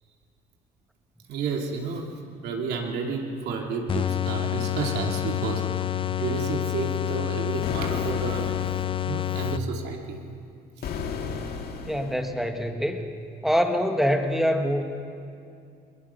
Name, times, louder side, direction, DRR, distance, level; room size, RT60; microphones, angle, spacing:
voice 1, 1.3-2.1 2.4-5.9 6.2-8.7 9.1-10.2, right 4 dB, 75° right, 1 dB, 2.6 m, -31 dB
sound 1, 3.9-10.0, left 11 dB, 30° left, 0.5 m, -28 dB
sound 2, 7.6-9.0 10.8-12.3, left 6 dB, 65° left, 2.0 m, -34 dB
voice 2, 11.8-13.1 13.4-14.8, equal, ahead, 5 dB, 1.6 m, -24 dB
21.5 x 20.0 x 6.9 m, 2.5 s
cardioid pair, 110°, 17 cm